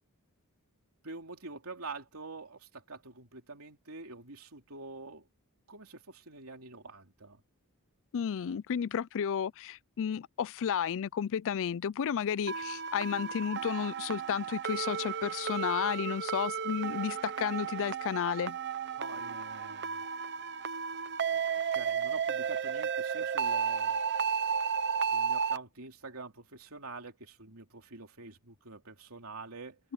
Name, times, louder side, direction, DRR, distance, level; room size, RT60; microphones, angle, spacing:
voice 1, 1.0-5.3 5.7-7.4 19.0-20.0 21.3-21.4 21.7-24.0 25.1-29.8, right 3 dB, 70° right, 3.4 m, -46 dB
voice 2, 8.1-18.6, left 8 dB, 60° left, 0.4 m, -32 dB
sound 1, 12.5-25.6, right 6 dB, 50° right, 0.9 m, -33 dB
head